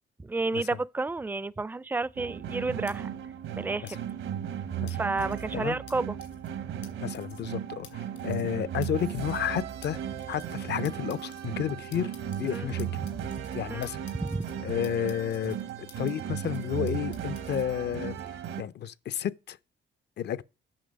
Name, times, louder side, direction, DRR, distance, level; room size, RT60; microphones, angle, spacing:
voice 1, 0.2-3.1 3.6-4.0 4.9-6.2 12.5-12.7 13.0-13.1 13.7-13.9 14.2-14.4, right 3 dB, 10° right, 0.4 m, -31 dB
sound 1, 2.2-18.6, right 9 dB, 85° right, 1.2 m, -36 dB
sound 2, 2.9-3.0 3.9-4.0 4.9-5.4 5.9-6.0 6.2-6.5 6.8-6.9 7.1-7.5 7.8-8.5 8.8-8.9 9.1-9.5 9.8-9.9 10.2-10.6 10.8-11.4 11.9-13.6 13.8-14.5 14.8-16.1 16.4-17.6, left 8 dB, 75° left, 2.7 m, -52 dB
voice 2, 7.0-10.0 10.3-12.1 12.4-12.9 13.5-14.0 14.6-15.6 16.0-18.2 18.6-19.6 20.2-20.4, left 10 dB, 60° left, 0.5 m, -31 dB
8.9 x 6.2 x 5.1 m
cardioid pair, 90°, 20 cm